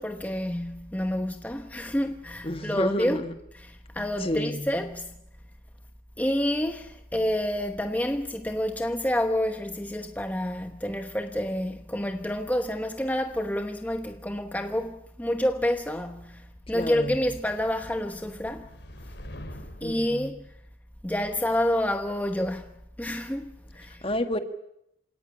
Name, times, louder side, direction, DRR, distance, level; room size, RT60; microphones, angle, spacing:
voice 1, 0.0-3.2 3.6-5.1 6.2-18.7 19.8-20.4 21.0-22.7 23.0-24.0, left 1 dB, 10° left, 1.0 m, -28 dB
voice 2, 2.4-3.3 4.2-4.7 16.7-17.1 19.8-20.3 24.0-24.4, left 1 dB, 30° left, 1.7 m, -30 dB
sound 1, 16.5-20.1, equal, 75° left, 4.2 m, -45 dB
28.0 x 17.5 x 9.9 m
head